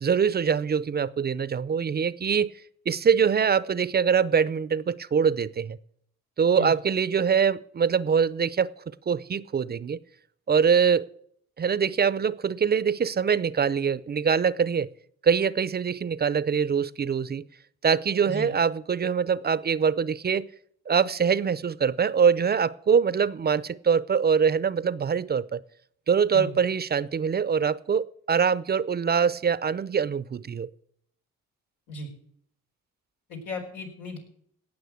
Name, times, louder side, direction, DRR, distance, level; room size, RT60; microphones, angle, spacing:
voice 1, 0.0-2.5 2.9-5.8 6.4-8.7 9.1-10.0 10.5-11.1 11.6-14.9 15.2-17.4 17.8-20.5 20.9-25.6 26.1-30.7, right 6 dB, 35° right, 18 dB, 0.6 m, -24 dB
voice 2, 33.3-34.2, left 2 dB, 90° left, 1 dB, 4.7 m, -36 dB
17.5 x 6.4 x 8.3 m, 0.66 s
cardioid pair, 90°, 30 cm